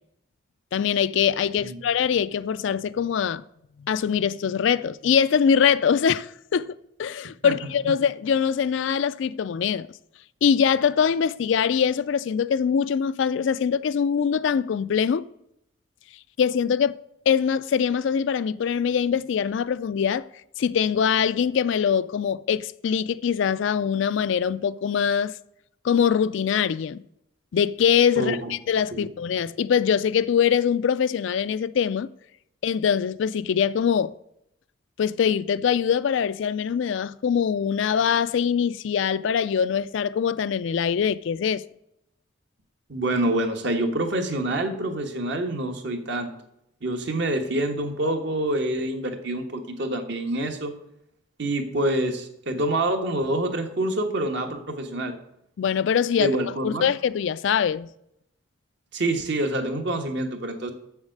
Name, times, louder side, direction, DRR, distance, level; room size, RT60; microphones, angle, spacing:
voice 1, 0.7-3.4 3.9-9.9 10.4-15.2 16.4-17.0 17.3-20.2 20.6-25.3 25.8-27.0 27.5-32.1 32.6-34.1 35.0-41.6 55.6-56.3 56.6-57.9, left 7 dB, 65° left, 0.3 m, -23 dB
voice 2, 28.2-28.5 28.9-29.1 42.9-46.3 46.8-50.7 51.4-55.1 56.2-56.9 58.9-60.7, right 1 dB, 60° right, 1.3 m, -26 dB
7.2 x 7.2 x 6.5 m
head